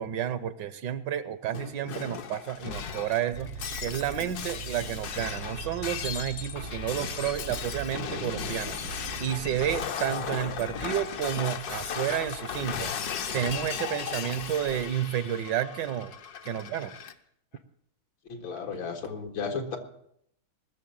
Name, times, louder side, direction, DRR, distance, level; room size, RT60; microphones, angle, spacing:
voice 1, 0.0-3.5 3.8-12.9 13.3-16.1 16.4-17.0, right 10 dB, 65° right, 14 dB, 1.3 m, -31 dB
Shatter, 1.5-17.1, left 7 dB, 60° left, 1.3 m, -36 dB
sound 1, 3.3-9.9, right 5 dB, 90° right, 1.9 m, -41 dB
voice 2, 18.3-19.8, left 5 dB, 75° left, 3 dB, 2.7 m, -34 dB
20.0 x 6.9 x 8.7 m, 0.72 s
omnidirectional pair, 2.2 m